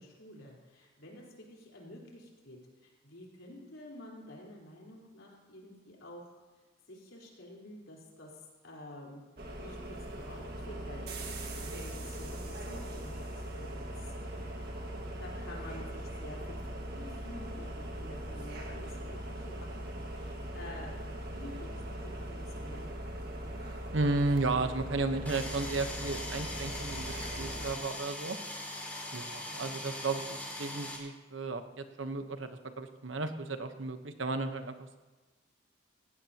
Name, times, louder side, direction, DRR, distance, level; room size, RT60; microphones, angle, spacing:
voice 1, 0.0-6.4 6.9-8.3 8.6-9.2 9.6-11.1 11.3-13.1 13.6-13.8 14.4-14.7 15.2-22.9 29.5-29.7, left 1 dB, 90° left, -3 dB, 4.3 m, -50 dB
sound 1, 9.4-27.8, right 1 dB, 55° right, 1.8 m, -40 dB
voice 2, 23.9-28.4 29.1-34.9, right 3 dB, 75° right, 8 dB, 1.1 m, -34 dB
sound 2, 25.3-31.0, left 1 dB, 10° left, 2.6 m, -41 dB
18.5 x 16.0 x 3.0 m, 1.2 s
head